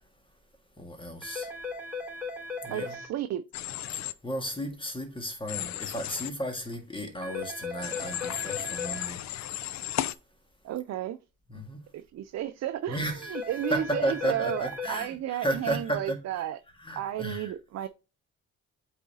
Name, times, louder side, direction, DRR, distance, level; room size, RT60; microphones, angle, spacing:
voice 1, 0.8-1.5 2.6-3.0 3.9-9.2 11.5-11.8 12.9-13.3 13.7-16.4 16.8-17.5, right 1 dB, 15° left, 1.7 m, -34 dB
sound 1, 1.2-3.1 7.2-9.1 13.2-15.1, left 3 dB, ahead, 3.8 m, -37 dB
voice 2, 2.7-3.4 10.6-11.2 11.5-11.6 11.9-13.0 13.3-16.6 17.0-17.9, right 12 dB, 60° right, 0.5 m, -33 dB
Human voice / Train, 3.5-4.1 5.5-6.3 7.8-10.1, left 13 dB, 65° left, 0.5 m, -34 dB
8.3 x 4.0 x 2.8 m
cardioid pair, 90°, 30 cm